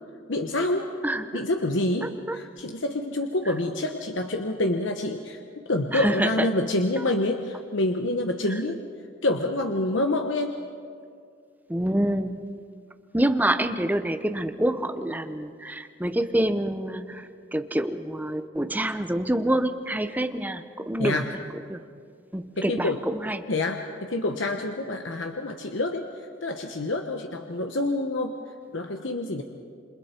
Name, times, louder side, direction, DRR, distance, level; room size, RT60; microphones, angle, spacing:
voice 1, 0.3-0.9 1.3-5.4 5.7-8.8 9.2-10.5 21.0-21.3 22.6-23.0 23.5-26.1 26.4-28.4 28.7-29.4, left 2 dB, 65° left, 4 dB, 1.1 m, -27 dB
voice 2, 1.0-1.4 2.0-2.4 3.5-3.6 5.9-6.5 7.0-7.1 11.7-12.6 13.1-21.2 21.7-21.8 22.3-23.5, right 1 dB, 10° right, 9 dB, 0.8 m, -27 dB
28.0 x 26.5 x 4.5 m, 2.2 s
head